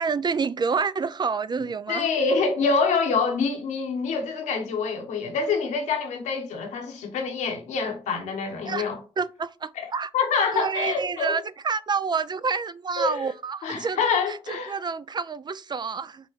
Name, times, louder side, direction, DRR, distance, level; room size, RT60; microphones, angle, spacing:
voice 1, 0.0-2.2 8.7-8.9 9.2-10.1 10.5-14.0 14.3-16.3, right 5 dB, 35° right, 0.4 m, -28 dB
voice 2, 1.9-9.0 9.8-9.9 10.1-11.4 13.0-13.3 13.6-14.8, left 4 dB, 85° left, 1.1 m, -26 dB
5.1 x 2.2 x 4.6 m
supercardioid pair, 45°, 12 cm